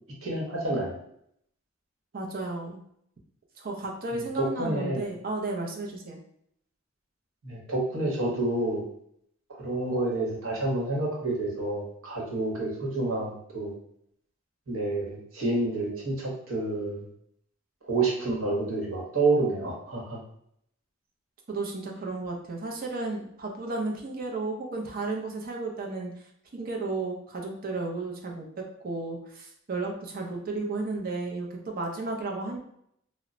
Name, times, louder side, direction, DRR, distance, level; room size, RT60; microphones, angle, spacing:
voice 1, 0.2-1.0 4.1-5.0 7.4-8.8 9.6-13.7 14.7-17.0 17.8-20.2, right 2 dB, 80° right, -3 dB, 1.0 m, -29 dB
voice 2, 2.1-2.8 3.6-6.2 21.5-26.1 26.5-32.6, right 3 dB, 45° right, 1 dB, 0.5 m, -33 dB
2.1 x 2.1 x 3.7 m, 0.70 s
head